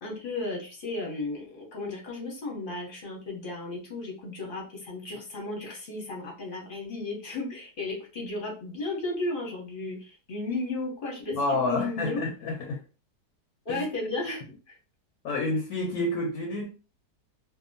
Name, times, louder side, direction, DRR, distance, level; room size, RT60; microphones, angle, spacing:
voice 1, 0.0-11.4 11.6-12.2 13.6-14.8, left 2 dB, 45° left, -2 dB, 0.7 m, -34 dB
voice 2, 11.3-12.8 13.7-13.9 15.2-16.7, left 2 dB, 70° left, 2 dB, 0.9 m, -29 dB
2.7 x 2.2 x 2.6 m, 0.35 s
omnidirectional pair, 1.9 m